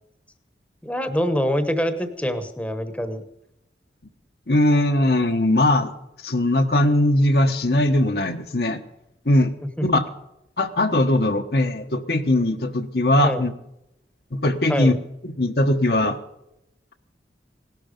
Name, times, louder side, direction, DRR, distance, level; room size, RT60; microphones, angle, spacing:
voice 1, 0.8-3.2 9.8-10.0 13.2-13.4 14.7-14.9, equal, 10° left, 8 dB, 1.0 m, -25 dB
voice 2, 4.5-5.9 6.2-8.8 9.2-9.5 9.8-10.1 10.6-13.5 14.3-15.0 15.4-16.2, left 1 dB, 65° left, 6 dB, 1.2 m, -20 dB
18.0 x 12.0 x 5.3 m, 0.85 s
head